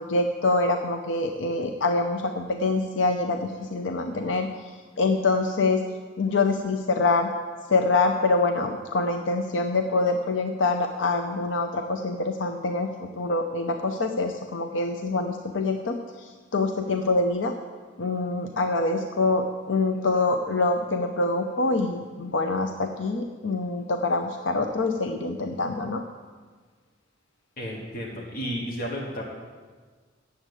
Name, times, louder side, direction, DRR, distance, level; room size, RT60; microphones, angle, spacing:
voice 1, 0.0-4.5 5.0-5.8 6.2-7.3 7.7-17.5 18.0-26.0, left 3 dB, 85° left, 5 dB, 0.6 m, -25 dB
voice 2, 27.6-29.3, equal, 50° left, -2 dB, 1.4 m, -32 dB
8.8 x 7.6 x 8.2 m, 1.5 s
head